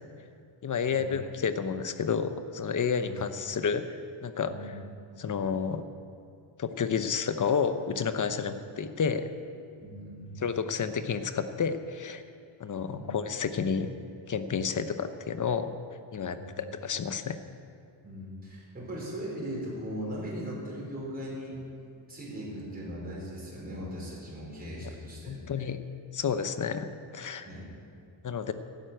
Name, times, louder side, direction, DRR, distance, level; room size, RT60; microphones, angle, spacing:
voice 1, 0.6-3.9 4.2-4.5 5.2-5.8 6.6-9.3 10.4-12.2 12.6-13.9 14.3-15.7 16.1-17.4 24.8-24.9 25.3-25.8 26.1-27.5 28.2-28.5, left 6 dB, 40° left, 10 dB, 0.9 m, -30 dB
voice 2, 3.0-3.4 4.4-4.7 8.2-8.4 9.8-10.4 12.9-13.1 16.3-16.6 18.0-21.6 22.1-25.4 27.4-27.6, equal, 20° right, -6 dB, 5.0 m, -39 dB
12.5 x 12.0 x 9.0 m, 2.5 s
wide cardioid pair, 150°, 48 cm